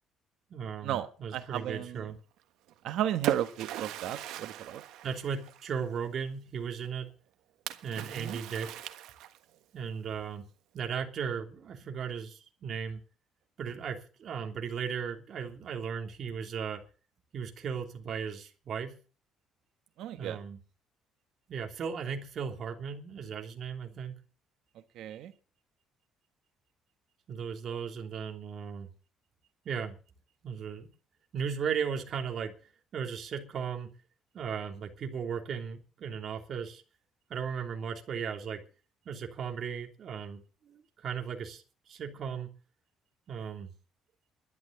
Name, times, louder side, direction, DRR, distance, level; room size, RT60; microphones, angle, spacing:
voice 1, 0.5-2.2 5.0-7.1 7.8-8.9 9.7-10.5 10.7-13.0 13.6-16.8 17.3-18.9 20.2-20.6 21.5-24.2 27.3-28.9 29.6-30.0 30.4-30.9 31.3-32.5 32.9-33.9 34.3-36.8 37.3-38.6 39.0-42.5 43.3-43.7, right 7 dB, 45° right, 3 dB, 3.2 m, -36 dB
voice 2, 1.3-2.0 2.8-4.8 8.0-8.4 20.0-20.4 24.9-25.3, right 11 dB, 70° right, 10 dB, 1.2 m, -34 dB
Splash splatter, 2.7-5.9 7.7-9.6, right 13 dB, 85° right, 1.4 m, -38 dB
12.0 x 10.5 x 8.1 m, 0.38 s
cardioid pair, 140°, 0 cm